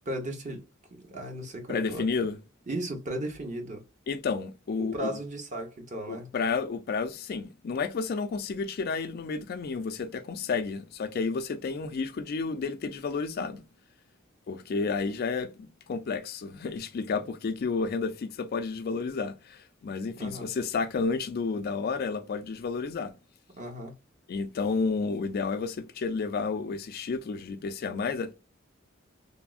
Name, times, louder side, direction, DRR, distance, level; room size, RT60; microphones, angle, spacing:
voice 1, 0.1-0.6 0.9-2.0 2.7-3.8 4.8-6.3 20.2-20.5 23.6-23.9, right 1 dB, 40° right, 0.8 m, -35 dB
voice 2, 1.7-2.4 4.1-5.1 6.1-13.6 14.5-23.1 24.3-28.3, left 4 dB, 50° left, 0.4 m, -31 dB
3.3 x 2.0 x 2.3 m
head